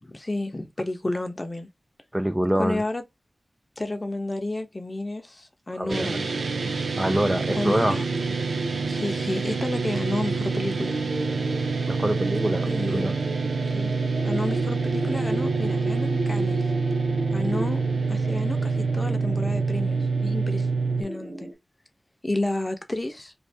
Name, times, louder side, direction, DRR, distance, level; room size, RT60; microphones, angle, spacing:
voice 1, 0.0-1.7 2.6-3.0 3.8-6.2 7.5-8.0 8.9-11.0 12.7-13.2 13.7-13.9 14.2-16.7 17.3-17.8 18.1-20.7 21.0-21.5 22.2-23.3, left 2 dB, 30° left, 0.7 m, -31 dB
voice 2, 2.1-2.8 5.8-6.1 7.0-8.0 11.9-13.1, right 1 dB, 10° right, 0.3 m, -25 dB
sound 1, 5.9-21.0, right 4 dB, 85° right, 0.5 m, -27 dB
sound 2, 7.4-21.5, right 2 dB, 55° right, 0.9 m, -34 dB
2.7 x 2.4 x 3.3 m
wide cardioid pair, 65°, 0 cm